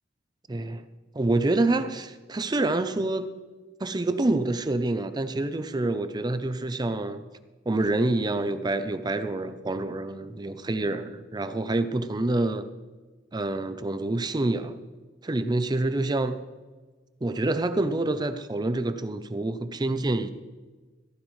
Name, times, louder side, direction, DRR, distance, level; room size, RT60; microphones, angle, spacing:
voice 1, 0.5-0.8 1.1-3.3 3.8-7.2 7.7-12.7 13.3-14.8 15.2-16.4 17.2-20.3, right 2 dB, 20° right, 11 dB, 0.5 m, -27 dB
15.0 x 13.5 x 3.2 m, 1.3 s
head